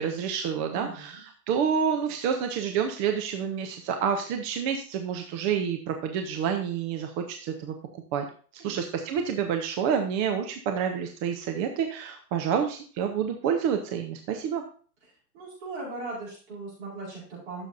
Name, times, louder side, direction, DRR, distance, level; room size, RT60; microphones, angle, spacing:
voice 1, 0.0-7.7 8.1-8.2 8.5-14.6, right 7 dB, 20° right, 5 dB, 0.6 m, -28 dB
voice 2, 0.7-1.2 8.6-8.8 15.3-17.7, right 3 dB, 45° right, -7 dB, 5.2 m, -38 dB
14.0 x 7.0 x 2.6 m, 0.42 s
hypercardioid pair, 125°, 48 cm